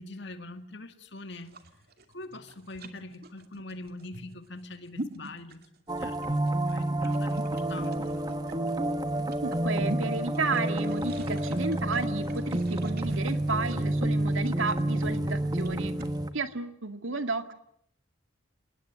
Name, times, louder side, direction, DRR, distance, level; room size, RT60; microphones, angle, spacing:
voice 1, 0.0-1.6 2.1-5.6 6.0-8.2, left 2 dB, 60° left, 8 dB, 2.3 m, -43 dB
sound 1, 1.4-16.2, right 2 dB, 50° right, 2.6 m, -43 dB
sound 2, 5.9-16.3, right 1 dB, 20° right, 1.5 m, -29 dB
voice 2, 9.4-15.9 16.3-17.5, right 3 dB, 80° right, 9 dB, 2.1 m, -32 dB
29.0 x 20.0 x 9.6 m, 0.70 s
head